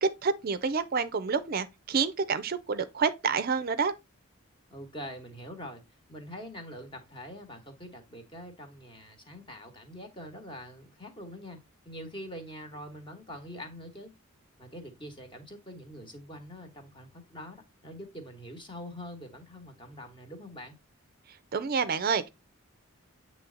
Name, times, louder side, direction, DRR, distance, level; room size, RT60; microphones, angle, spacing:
voice 1, 0.0-3.9 21.5-22.3, right 5 dB, 45° right, 0.4 m, -28 dB
voice 2, 4.7-5.8 6.1-14.1 14.6-20.8, equal, 25° left, 1.2 m, -44 dB
8.2 x 3.2 x 3.8 m
head